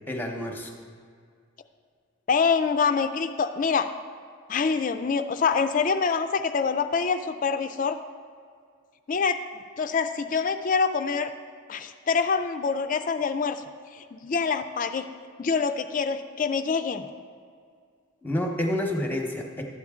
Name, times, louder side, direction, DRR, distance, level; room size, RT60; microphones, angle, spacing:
voice 1, 0.1-0.7 18.2-19.6, left 1 dB, 10° left, 2 dB, 0.8 m, -29 dB
voice 2, 2.3-3.9 4.5-8.0 9.1-9.4 9.8-11.3 11.7-13.6 13.9-15.1 15.4-17.0, left 5 dB, 40° left, 9 dB, 0.3 m, -25 dB
12.5 x 8.2 x 3.6 m, 2.2 s
head